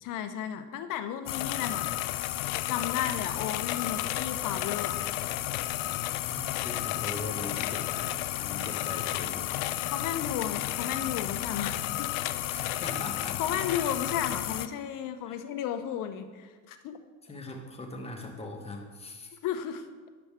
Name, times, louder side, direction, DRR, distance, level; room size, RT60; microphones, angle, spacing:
voice 1, 0.0-1.9 2.7-5.0 9.9-12.1 13.4-17.0 19.4-19.9, left 9 dB, 55° left, 9 dB, 0.8 m, -33 dB
sound 1, 1.3-14.7, left 15 dB, 85° left, 0.5 m, -32 dB
voice 2, 6.0-9.6 12.5-13.6 15.2-15.4 17.3-19.4, left 2 dB, 15° left, 2 dB, 1.3 m, -41 dB
9.9 x 7.0 x 3.6 m, 1.4 s
supercardioid pair, 105°, 39 cm